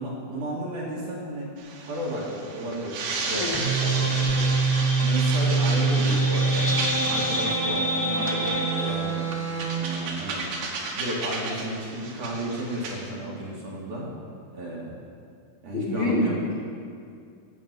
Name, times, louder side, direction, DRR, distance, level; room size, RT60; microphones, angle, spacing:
voice 1, 0.0-1.5 1.8-4.5 5.0-6.7 7.1-9.3 9.7-10.5 10.9-14.1 14.5-15.0 15.6-16.3, right 1 dB, 50° right, -5 dB, 3.0 m, -33 dB
sound 1, 1.6-13.1, right 3 dB, 65° right, 2.9 m, -33 dB
sound 2, 3.5-8.9, right 2 dB, 20° left, 0.6 m, -24 dB
Bowed string instrument, 6.5-9.9, right 7 dB, 80° right, 5.5 m, -32 dB
voice 2, 15.7-16.6, left 2 dB, 75° left, -3 dB, 1.6 m, -27 dB
15.5 x 6.4 x 8.2 m, 2.3 s
omnidirectional pair, 5.5 m